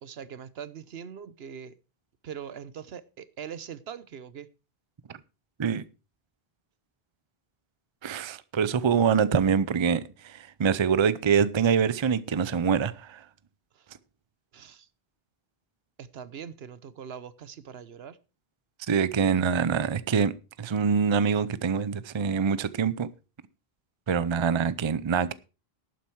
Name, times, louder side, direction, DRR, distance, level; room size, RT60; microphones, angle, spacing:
voice 1, 0.0-1.7 2.2-4.5 13.7-13.9 14.5-14.9 16.0-18.2, right 8 dB, 75° right, 1.1 m, -42 dB
voice 2, 8.0-13.2 18.9-20.3 20.6-23.1 24.1-25.3, right 6 dB, 35° right, 0.6 m, -25 dB
11.5 x 9.3 x 4.6 m
omnidirectional pair, 1.0 m